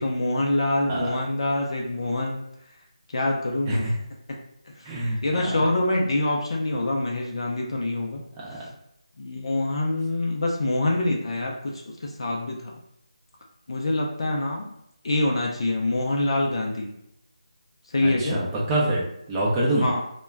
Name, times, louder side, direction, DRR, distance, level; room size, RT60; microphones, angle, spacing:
voice 1, 0.0-2.4 3.1-4.0 4.8-8.2 9.2-12.8 13.7-14.7 15.0-16.9 17.9-18.4 19.8-20.0, left 2 dB, 50° left, 0 dB, 0.4 m, -25 dB
voice 2, 4.9-5.2 8.4-8.6 18.0-19.0 19.3-19.9, right 1 dB, 10° right, -5 dB, 0.5 m, -25 dB
2.2 x 2.1 x 3.4 m, 0.77 s
figure-of-eight pair, 165°, 4 cm